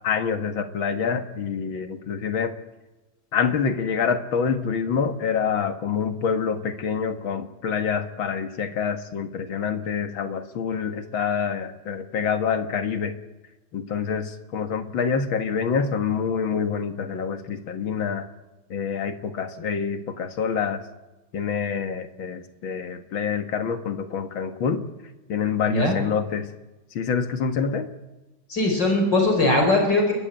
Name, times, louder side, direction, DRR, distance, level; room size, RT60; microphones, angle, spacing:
voice 1, 0.0-2.5 3.3-13.1 13.7-18.3 18.7-20.8 21.3-24.9 25.3-26.5 26.9-27.9, left 6 dB, 75° left, 8 dB, 2.5 m, -26 dB
voice 2, 25.7-26.0 28.5-30.1, left 2 dB, 60° left, 3 dB, 4.9 m, -20 dB
29.5 x 14.0 x 9.2 m, 1.1 s
omnidirectional pair, 2.2 m